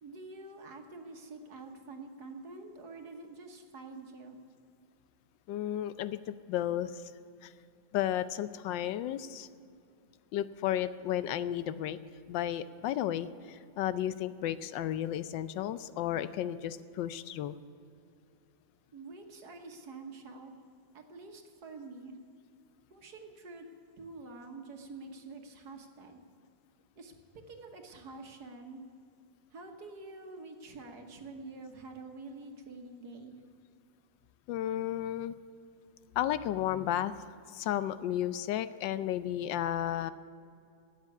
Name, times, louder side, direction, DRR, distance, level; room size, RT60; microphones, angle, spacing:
voice 1, 0.0-4.4 18.9-20.5 20.9-22.2 22.9-23.7 24.0-26.2 27.0-27.1 27.5-28.8 29.5-33.4, right 3 dB, 60° right, 4 dB, 1.8 m, -47 dB
voice 2, 5.5-7.0 7.4-7.5 7.9-9.5 10.3-12.0 12.3-17.6 34.5-35.3 36.2-37.1 37.5-40.1, left 11 dB, 80° left, 14 dB, 1.3 m, -33 dB
12.5 x 8.3 x 9.7 m, 2.5 s
omnidirectional pair, 2.0 m